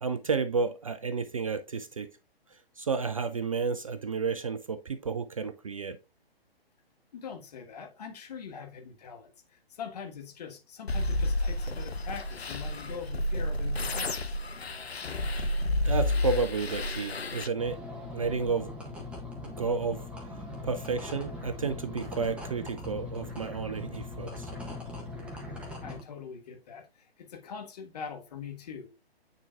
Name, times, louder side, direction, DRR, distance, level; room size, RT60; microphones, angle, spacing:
voice 1, 0.0-2.1 2.8-6.0 15.3-15.5 15.9-17.8 18.1-18.7 19.4-20.0 20.3-24.5, right 5 dB, 35° right, 0.4 m, -31 dB
voice 2, 7.1-14.3 25.8-28.9, left 6 dB, 40° left, 1.5 m, -43 dB
sound 1, 10.9-17.5, left 1 dB, 75° left, 0.8 m, -30 dB
sound 2, 17.6-26.0, left 2 dB, 5° right, 1.2 m, -40 dB
9.0 x 4.4 x 2.4 m
figure-of-eight pair, 130°, 31 cm